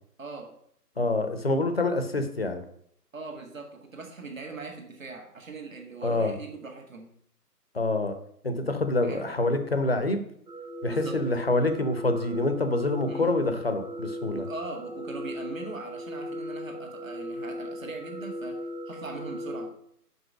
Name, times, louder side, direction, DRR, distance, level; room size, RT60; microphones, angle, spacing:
voice 1, 0.2-0.5 3.1-7.1 9.0-9.3 10.9-11.2 13.1-13.3 14.3-18.6 18.9-19.7, right 3 dB, 55° right, 2 dB, 1.7 m, -40 dB
voice 2, 1.0-2.6 6.0-6.3 7.7-8.1 8.4-10.2 10.8-14.4, left 2 dB, 40° left, 8 dB, 0.7 m, -26 dB
sound 1, 10.5-19.7, equal, 80° right, 1.5 m, -37 dB
5.4 x 5.4 x 6.1 m, 0.68 s
figure-of-eight pair, 150°, 48 cm